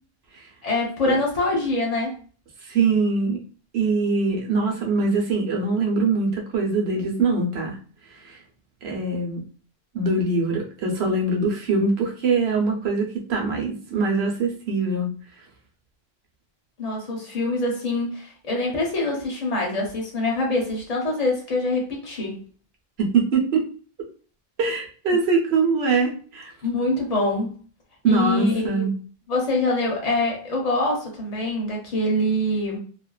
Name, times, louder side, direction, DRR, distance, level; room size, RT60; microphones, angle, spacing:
voice 1, 0.6-2.2 16.8-22.4 26.6-27.5 28.0-28.8 29.3-32.8, left 2 dB, 40° left, -2 dB, 0.8 m, -24 dB
voice 2, 2.7-3.4 3.7-7.8 8.3-8.4 8.8-9.4 9.9-15.1 23.0-23.6 24.6-26.5 28.0-28.9, right 4 dB, 90° right, 0 dB, 1.0 m, -23 dB
2.5 x 2.2 x 2.3 m, 0.40 s
omnidirectional pair, 1.0 m